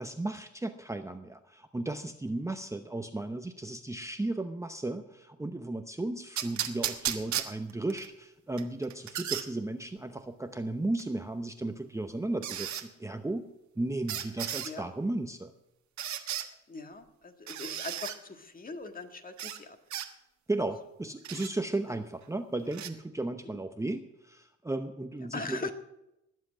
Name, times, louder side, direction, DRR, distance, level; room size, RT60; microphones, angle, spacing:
voice 1, 0.0-13.5 13.8-15.5 20.5-25.7, right 2 dB, 10° right, 7 dB, 0.8 m, -35 dB
sound 1, 6.4-8.1 8.6-9.5 11.0-11.1 12.4-12.8 14.1-14.7 16.0-16.5 17.5-18.2 19.4-19.6 19.9-20.1 21.2-21.5 22.7-22.9, right 10 dB, 70° right, 1.4 m, -34 dB
voice 2, 16.7-19.8 21.9-22.0 23.4-23.6 25.2-25.7, left 3 dB, 30° left, 7 dB, 1.8 m, -41 dB
20.0 x 7.7 x 6.3 m, 0.88 s
cardioid pair, 90°, 30 cm